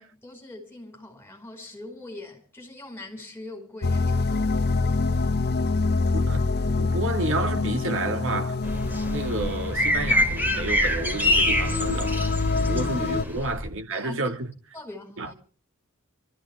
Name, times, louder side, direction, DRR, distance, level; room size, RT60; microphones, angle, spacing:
voice 1, 0.0-4.5 13.5-13.6 13.9-14.3 14.7-15.3, left 2 dB, 10° left, 5.1 m, -42 dB
sound 1, 3.8-13.2, left 3 dB, 50° left, 0.7 m, -26 dB
voice 2, 6.1-8.6 9.0-12.2 12.5-14.5 15.2-15.3, right 2 dB, 65° right, 2.1 m, -30 dB
sound 2, 8.6-13.7, left 1 dB, 10° right, 3.6 m, -25 dB
25.5 x 14.0 x 3.5 m
head